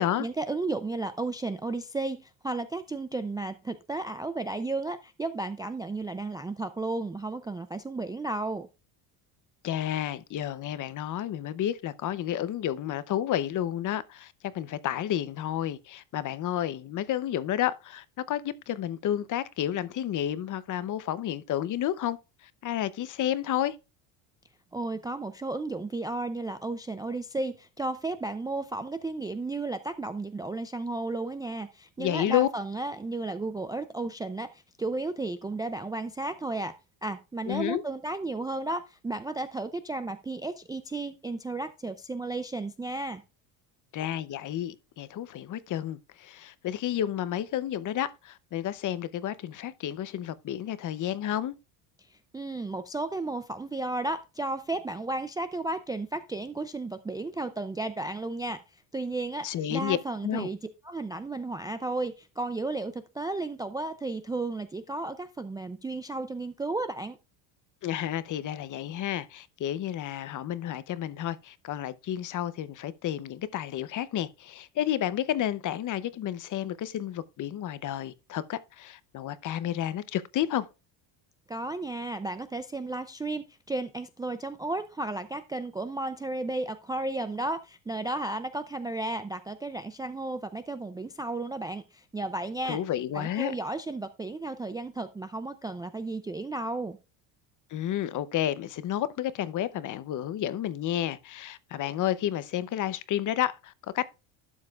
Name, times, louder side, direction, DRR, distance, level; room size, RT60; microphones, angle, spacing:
voice 1, 0.2-8.7 24.7-36.7 37.0-43.2 52.1-58.6 58.9-60.6 60.8-67.2 81.5-92.8 93.1-97.0, right 2 dB, 10° right, 0.3 m, -33 dB
voice 2, 9.6-22.2 22.4-23.8 32.0-32.5 37.5-37.8 43.9-51.5 59.4-60.0 60.2-60.5 67.8-80.7 92.6-93.5 97.7-104.1, left 11 dB, 40° left, 0.7 m, -31 dB
12.0 x 7.4 x 2.4 m
cardioid pair, 120°, 47 cm